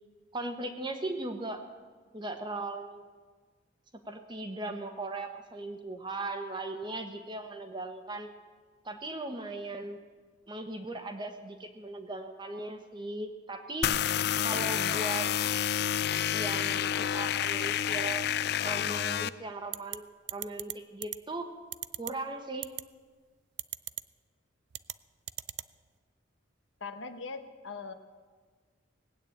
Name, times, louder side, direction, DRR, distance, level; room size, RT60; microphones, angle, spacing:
voice 1, 0.3-1.6 2.1-3.2 4.1-8.3 8.8-10.0 10.5-13.9 14.4-15.3 16.3-18.2 18.6-20.0 20.3-21.5 22.0-22.7, right 2 dB, 25° right, 6 dB, 1.2 m, -38 dB
sound 1, 13.8-19.3, left 10 dB, 55° left, 0.4 m, -29 dB
sound 2, 19.7-20.0 20.3-20.7 21.0-21.2 21.7-22.1 22.6-22.8 23.6-24.0 24.7-24.9 25.3-25.7, right 16 dB, 60° right, 0.4 m, -36 dB
voice 2, 26.8-27.9, left 4 dB, 75° left, 8 dB, 1.1 m, -40 dB
19.0 x 8.9 x 8.7 m, 1.5 s
head